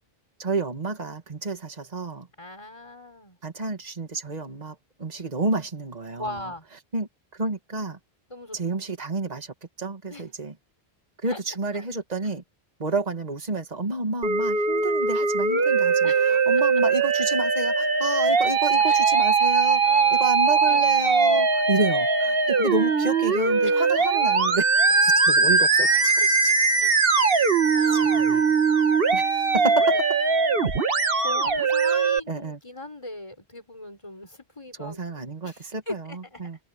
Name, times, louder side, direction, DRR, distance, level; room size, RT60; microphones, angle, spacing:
voice 1, 0.4-2.3 3.4-6.4 6.9-8.0 8.5-10.5 11.2-12.4 12.8-19.8 20.1-24.6 25.0-26.5 27.9-28.5 29.1-30.2 32.3-32.6 34.8-36.6, right 2 dB, 40° right, 2.0 m, -30 dB
voice 2, 2.4-3.4 6.2-6.6 8.3-8.6 10.1-10.2 11.2-11.4 11.7-11.8 16.0-16.3 16.5-16.6 18.8-19.0 19.8-20.3 20.7-20.8 23.6-23.8 26.2-26.9 27.3-28.4 31.2-35.0 35.4-36.4, left 1 dB, 30° left, 5.2 m, -39 dB
Musical instrument, 14.2-32.2, right 4 dB, 65° right, 1.7 m, -21 dB
omnidirectional pair, 1.1 m